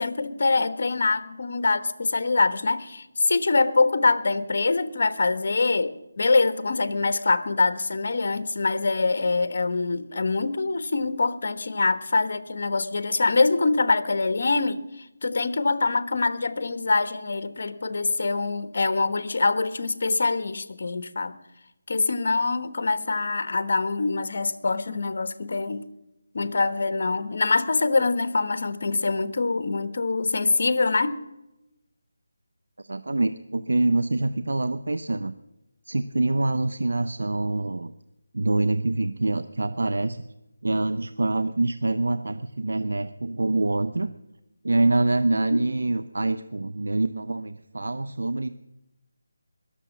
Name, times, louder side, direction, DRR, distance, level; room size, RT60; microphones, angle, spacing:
voice 1, 0.0-21.3 21.9-25.8 26.3-31.2 45.5-45.6, left 3 dB, 55° left, 13 dB, 1.1 m, -24 dB
voice 2, 32.8-35.3 35.8-37.9 38.3-40.2 40.6-44.1 44.6-48.5, right 2 dB, 80° right, 11 dB, 0.7 m, -25 dB
21.0 x 7.2 x 7.2 m, 0.93 s
figure-of-eight pair, 165°, 0 cm